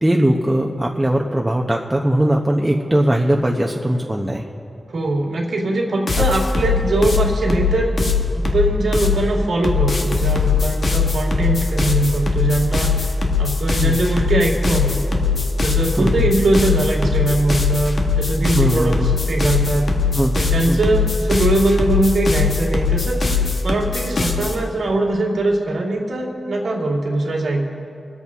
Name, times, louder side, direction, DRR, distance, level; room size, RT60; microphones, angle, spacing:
voice 1, 0.0-4.5 13.8-14.0 16.0-16.1 18.5-19.1 20.2-20.3 20.7-20.8, right 1 dB, 15° right, 0 dB, 1.0 m, -19 dB
voice 2, 4.9-13.1 13.4-15.1 15.6-19.9 20.4-23.3 23.6-27.6, right 2 dB, 85° right, -2 dB, 2.3 m, -21 dB
sound 1, 6.1-9.2 9.6-24.5, left 4 dB, 70° left, 1.6 m, -20 dB
24.5 x 8.2 x 3.7 m, 2.5 s
cardioid pair, 45°, 0 cm